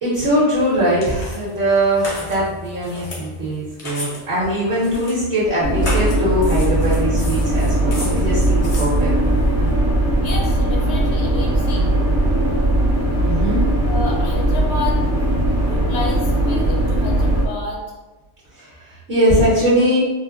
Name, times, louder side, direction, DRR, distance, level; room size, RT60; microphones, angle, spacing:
voice 1, 0.0-9.1 13.2-13.6 18.6-20.0, equal, 55° right, -10 dB, 1.4 m, -20 dB
sound 1, 0.5-9.7, left 2 dB, 40° left, 0.7 m, -35 dB
sound 2, 5.6-17.5, right 1 dB, 25° right, 0.3 m, -18 dB
voice 2, 10.2-11.9 13.9-15.0 15.5-17.8, left 4 dB, 65° left, -1 dB, 1.0 m, -30 dB
4.2 x 2.2 x 2.4 m, 1.1 s
omnidirectional pair, 1.3 m